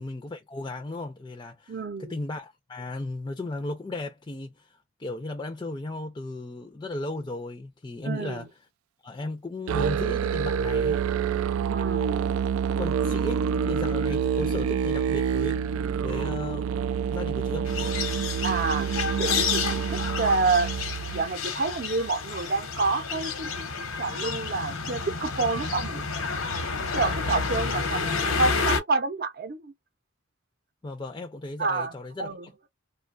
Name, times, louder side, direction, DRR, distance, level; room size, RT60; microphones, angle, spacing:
voice 1, 0.0-8.5 9.0-11.0 12.7-15.6 16.0-17.7 27.7-28.3 30.8-32.5, left 2 dB, 20° left, 0.4 m, -36 dB
voice 2, 1.7-2.1 8.0-8.5 11.7-12.1 18.4-18.9 19.2-20.7 21.1-26.0 26.8-29.7 31.6-31.9 32.2-32.5, right 3 dB, 45° right, 0.6 m, -28 dB
Musical instrument, 9.7-21.3, right 7 dB, 90° right, 0.3 m, -27 dB
sound 1, 17.7-28.8, left 4 dB, 85° left, 0.9 m, -30 dB
2.9 x 2.2 x 2.4 m
head